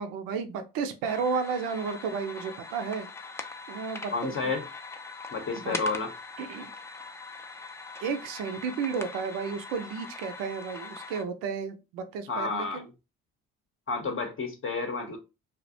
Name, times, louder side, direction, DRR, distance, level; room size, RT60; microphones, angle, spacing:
voice 1, 0.0-3.1 3.7-4.5 5.6-5.8 6.4-6.7 8.0-12.9, right 5 dB, 75° right, 0.5 m, -33 dB
sound 1, 1.0-11.2, left 3 dB, 10° left, 0.3 m, -42 dB
voice 2, 4.1-4.7 5.3-6.1 12.3-12.8 13.9-15.2, left 4 dB, 40° left, 0.7 m, -30 dB
2.4 x 2.1 x 2.6 m
supercardioid pair, 65°, 33 cm